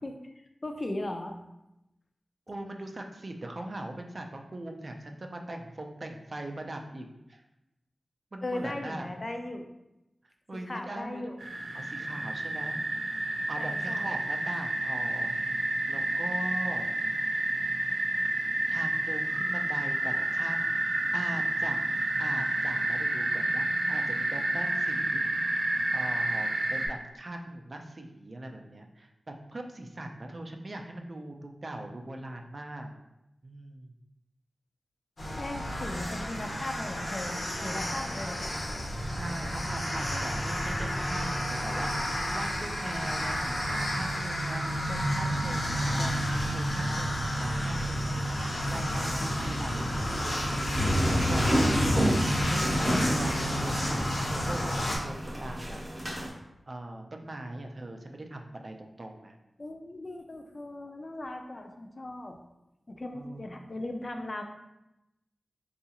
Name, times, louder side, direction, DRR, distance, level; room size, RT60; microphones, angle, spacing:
voice 1, 0.0-1.4 8.4-9.6 10.7-11.4 13.6-14.1 35.4-38.4 59.6-62.4 62.9-64.4, left 1 dB, 40° left, 4 dB, 0.4 m, -38 dB
voice 2, 2.5-7.4 8.3-9.1 10.5-11.4 11.7-12.8 13.5-15.3 15.9-17.0 18.7-21.8 22.2-25.2 25.9-32.9 33.4-33.9 37.6-38.0 39.2-48.4 48.7-55.8 56.7-59.3 63.1-63.5, right 1 dB, 45° right, 3 dB, 0.4 m, -41 dB
sound 1, 11.4-26.9, right 2 dB, 90° right, 0.7 m, -30 dB
sound 2, 35.2-55.0, equal, 60° left, 0.8 m, -31 dB
sound 3, 50.8-56.3, equal, 25° right, 0.7 m, -29 dB
3.7 x 2.4 x 2.8 m, 0.91 s
wide cardioid pair, 85°, 0 cm